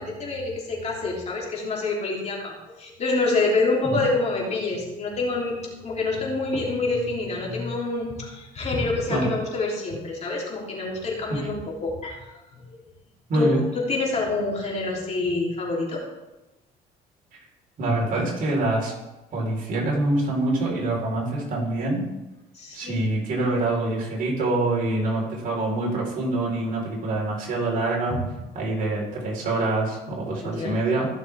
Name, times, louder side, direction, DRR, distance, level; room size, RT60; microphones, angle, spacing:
voice 1, 0.0-12.7 13.3-16.0 22.5-23.0 30.4-30.8, left 3 dB, 40° left, -3 dB, 3.3 m, -27 dB
voice 2, 13.3-13.6 17.8-18.9 19.3-22.1 22.7-28.2 28.5-31.1, right 2 dB, 55° right, -3 dB, 4.2 m, -25 dB
15.0 x 6.7 x 3.5 m, 1.0 s
cardioid pair, 110°, 17 cm